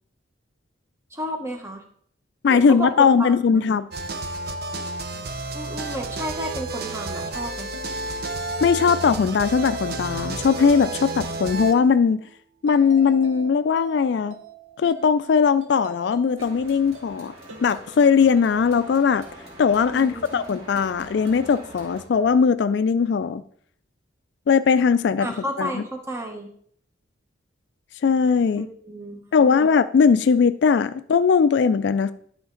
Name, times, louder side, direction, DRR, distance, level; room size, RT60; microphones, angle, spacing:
voice 1, 1.1-1.8 2.5-3.6 5.5-7.7 19.9-20.4 25.2-26.5 28.5-29.6, right 1 dB, 15° right, 3 dB, 1.0 m, -32 dB
voice 2, 2.4-3.9 8.6-12.2 12.6-14.4 14.8-17.3 17.6-19.3 19.6-23.4 24.5-25.8 28.0-28.7 29.3-32.1, left 6 dB, 60° left, 13 dB, 0.3 m, -19 dB
sound 1, 3.9-11.7, right 2 dB, 50° right, 0.7 m, -31 dB
sound 2, 7.4-20.7 21.2-22.4, right 2 dB, 85° right, 1.1 m, -45 dB
sound 3, 16.4-22.0, right 1 dB, 35° right, 2.2 m, -44 dB
10.5 x 5.1 x 3.8 m, 0.62 s
head